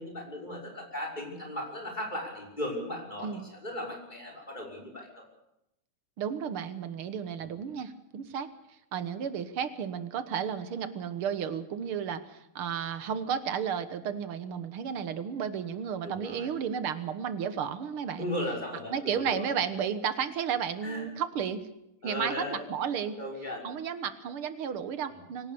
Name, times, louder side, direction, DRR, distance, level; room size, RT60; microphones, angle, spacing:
voice 1, 0.0-5.2 16.0-16.5 18.2-19.4 20.8-21.0 22.0-22.6 23.2-23.8 25.1-25.2, left 1 dB, 20° left, 0 dB, 6.2 m, -37 dB
voice 2, 6.2-8.5 8.9-18.3 18.9-21.6 22.0-23.2 23.6-25.5, right 7 dB, 85° right, 12 dB, 2.2 m, -33 dB
24.0 x 17.5 x 7.0 m, 0.86 s
omnidirectional pair, 2.3 m